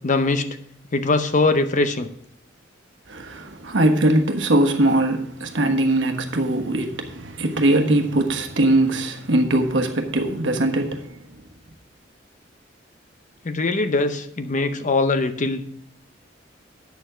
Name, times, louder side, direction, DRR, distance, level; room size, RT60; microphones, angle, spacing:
voice 1, 0.0-0.5 0.9-2.1 13.4-15.7, left 3 dB, 40° left, 0.7 m, -21 dB
voice 2, 3.1-11.2, right 1 dB, 75° right, 1.2 m, -21 dB
9.5 x 6.9 x 5.0 m
head